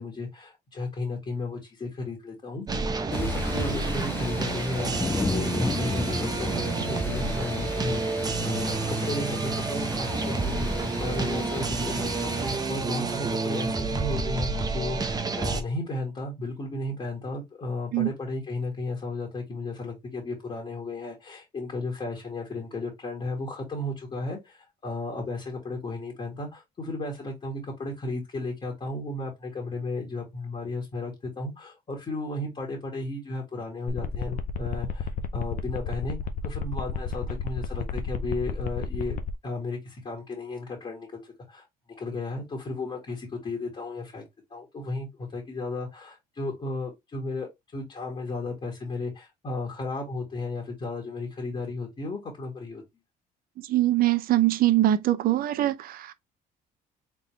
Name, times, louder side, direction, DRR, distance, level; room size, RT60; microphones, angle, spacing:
voice 1, 0.0-2.7 3.1-10.7 11.0-36.2 36.4-41.7 42.0-44.2 44.5-52.8, left 2 dB, 30° left, 1.8 m, -34 dB
sound 1, 2.7-15.6, right 4 dB, 25° right, 0.7 m, -29 dB
sound 2, 3.1-12.6, left 3 dB, 15° left, 0.4 m, -33 dB
sound 3, 33.9-39.3, left 6 dB, 55° left, 0.6 m, -31 dB
voice 2, 53.6-56.1, right 14 dB, 60° right, 0.6 m, -23 dB
3.9 x 3.6 x 3.1 m
cardioid pair, 110°, 17 cm